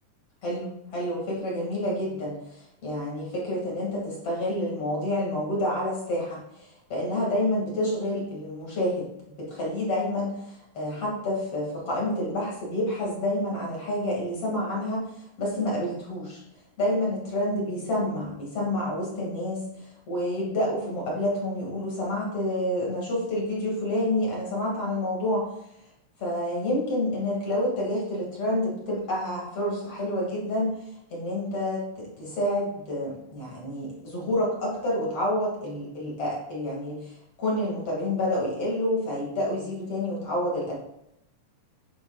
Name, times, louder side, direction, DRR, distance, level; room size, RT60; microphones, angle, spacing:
voice 1, 0.4-9.0 9.4-15.0 15.4-16.4 16.8-19.6 20.1-25.5 26.2-30.7 31.1-40.8, left 1 dB, 50° left, -3 dB, 3.1 m, -28 dB
9.7 x 8.9 x 2.4 m, 0.81 s
omnidirectional pair, 3.6 m